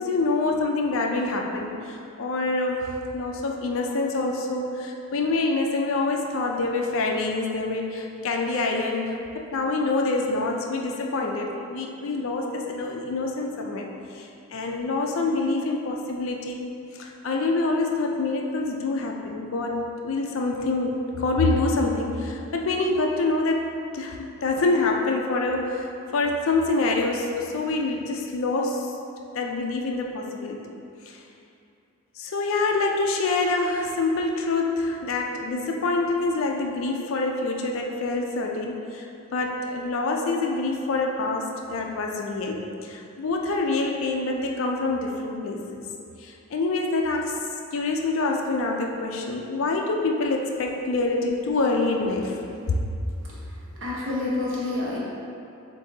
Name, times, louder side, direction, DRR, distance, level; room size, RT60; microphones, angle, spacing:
voice 1, 0.0-2.9 3.1-9.2 9.5-13.9 14.1-16.6 16.9-28.9 29.3-30.6 31.0-31.2 32.2-45.8 46.2-47.4 47.7-52.4, left 3 dB, 60° left, 1 dB, 0.4 m, -26 dB
voice 2, 53.7-55.0, left 2 dB, 60° right, -6 dB, 1.0 m, -28 dB
7.3 x 2.7 x 2.7 m, 2.6 s
head